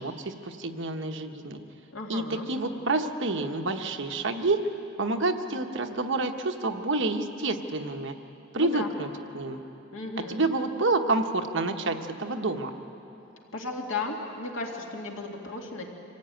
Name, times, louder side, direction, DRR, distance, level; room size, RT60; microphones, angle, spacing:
voice 1, 0.0-1.6 2.1-4.7 5.0-8.1 8.5-9.1 9.3-9.6 10.2-12.7, right 2 dB, 60° right, 5 dB, 1.2 m, -28 dB
voice 2, 1.9-2.5 8.5-8.9 9.9-10.4 13.5-15.9, left 3 dB, 65° left, 0 dB, 2.4 m, -35 dB
25.5 x 16.5 x 9.1 m, 3.0 s
head